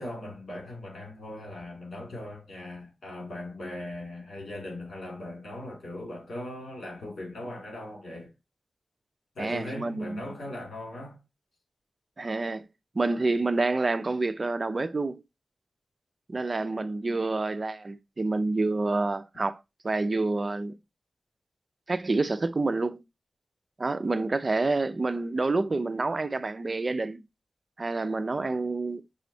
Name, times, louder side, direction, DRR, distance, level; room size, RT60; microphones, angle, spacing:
voice 1, 0.0-8.3 9.3-11.2, left 1 dB, 85° left, 2.5 m, -39 dB
voice 2, 9.4-10.2 12.2-12.7 12.9-15.2 16.3-19.6 19.8-20.8 21.9-23.0 23.8-27.2 27.8-29.0, right 3 dB, 40° right, 0.5 m, -28 dB
6.1 x 3.1 x 2.7 m
wide cardioid pair, 110°, 0 cm